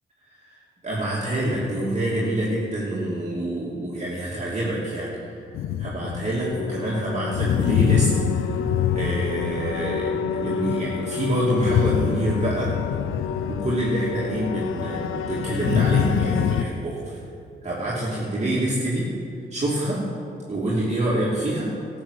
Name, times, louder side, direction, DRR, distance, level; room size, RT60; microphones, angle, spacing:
voice 1, 0.5-5.1 5.5-8.6 8.9-12.8 13.5-17.2 17.6-19.1 19.5-20.1 20.5-21.7, right 1 dB, 35° right, -7 dB, 2.8 m, -26 dB
sound 1, 5.5-16.6, left 8 dB, 80° left, 0.6 m, -25 dB
12.5 x 7.0 x 8.3 m, 2.4 s
cardioid pair, 70°, 21 cm